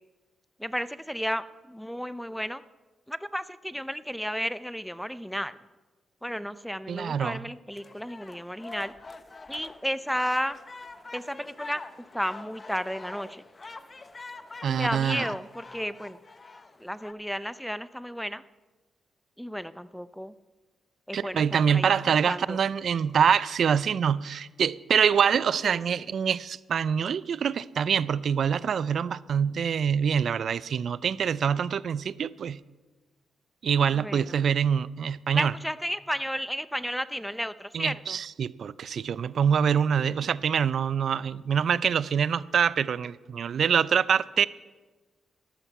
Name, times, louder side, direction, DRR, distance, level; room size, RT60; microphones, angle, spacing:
voice 1, 0.6-2.6 3.1-5.5 6.2-8.9 9.5-10.6 11.1-11.8 12.1-13.4 14.7-16.2 16.8-18.4 19.4-20.3 21.1-21.9 22.3-22.6 25.6-26.0 33.9-34.3 35.3-38.2, equal, ahead, 15 dB, 0.5 m, -33 dB
voice 2, 6.9-7.4 14.6-15.3 21.1-32.6 33.6-35.5 37.7-44.5, right 7 dB, 65° right, 19 dB, 0.4 m, -25 dB
sound 1, 7.7-17.1, left 3 dB, 35° left, 0.8 m, -45 dB
13.5 x 11.5 x 4.6 m, 1.3 s
cardioid pair, 65°, 0 cm